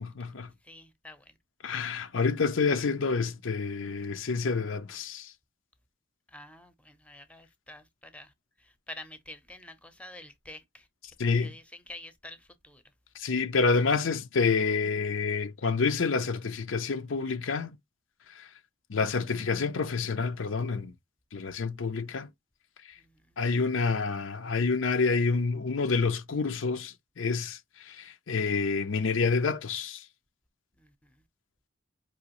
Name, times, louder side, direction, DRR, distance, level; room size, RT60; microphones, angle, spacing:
voice 1, 0.0-0.5 1.6-5.3 11.2-11.5 13.2-17.7 18.4-18.5 18.9-20.9 21.3-22.3 23.4-30.0, left 4 dB, 85° left, 0.6 m, -28 dB
voice 2, 0.6-1.3 6.3-8.3 8.6-12.8 23.0-23.4 30.8-31.1, left 1 dB, 5° left, 0.6 m, -48 dB
5.0 x 2.9 x 2.9 m
head